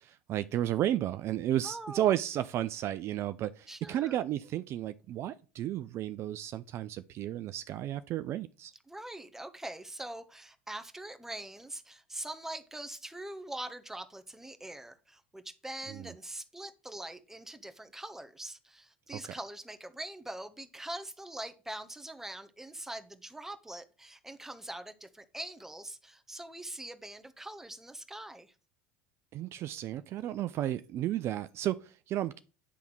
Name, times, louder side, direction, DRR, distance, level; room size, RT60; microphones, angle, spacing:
voice 1, 0.0-8.7 15.9-16.1 19.2-19.3 29.3-32.4, right 12 dB, 45° right, 0.4 m, -33 dB
voice 2, 1.6-2.1 3.7-4.2 8.9-28.5 30.2-30.3, right 1 dB, 5° right, 1.2 m, -43 dB
10.0 x 3.5 x 6.2 m
hypercardioid pair, 85°, 6 cm